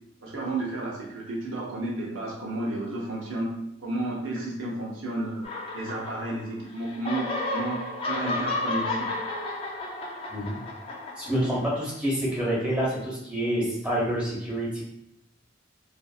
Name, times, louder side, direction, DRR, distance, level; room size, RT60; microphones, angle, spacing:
voice 1, 0.2-3.5 3.8-5.5 5.7-9.1, right 2 dB, 75° right, -4 dB, 0.5 m, -32 dB
sound 1, 5.4-6.6 6.8-11.8, left 2 dB, 30° left, 0.3 m, -32 dB
voice 2, 11.2-14.8, equal, 5° right, -7 dB, 0.8 m, -27 dB
2.6 x 2.5 x 2.3 m, 0.79 s
head